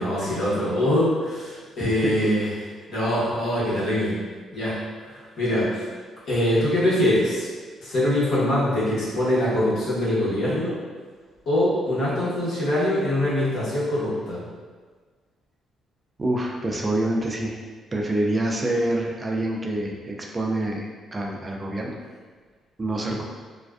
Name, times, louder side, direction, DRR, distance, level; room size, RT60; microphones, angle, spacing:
voice 1, 0.0-2.5 2.9-4.2 4.5-5.9 6.2-7.5 7.8-10.8 11.5-14.4, left 1 dB, 75° left, -10 dB, 1.1 m, -23 dB
voice 2, 1.8-2.1 16.2-17.6 17.9-22.0 22.8-23.2, right 1 dB, 25° right, 0 dB, 0.4 m, -26 dB
2.4 x 2.2 x 2.3 m, 1.5 s
cardioid pair, 90°, 0 cm